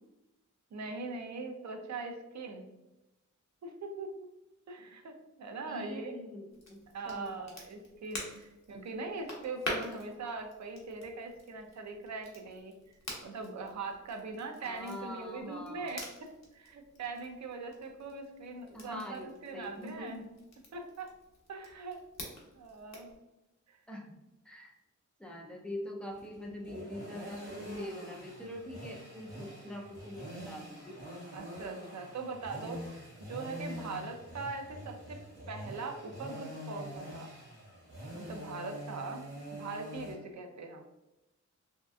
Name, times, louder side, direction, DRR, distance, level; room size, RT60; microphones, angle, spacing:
voice 1, 0.7-2.6 3.6-4.3 4.7-6.2 6.9-12.7 13.2-16.3 16.5-20.2 20.7-21.1 21.5-22.0 22.5-23.1 23.7-23.8 31.3-35.2 35.5-37.3 38.1-40.8, right 3 dB, 65° right, 4 dB, 0.5 m, -41 dB
voice 2, 5.7-7.6 14.6-16.0 18.7-20.3 23.9-24.2 24.4-24.8 25.2-31.0, left 1 dB, 5° left, 0 dB, 0.5 m, -44 dB
Crackle, 6.5-23.2, left 1 dB, 60° left, 0.9 m, -47 dB
sound 1, 26.1-40.1, equal, 40° right, 1.1 m, -45 dB
3.1 x 2.7 x 2.3 m, 0.96 s
wide cardioid pair, 130°, 30 cm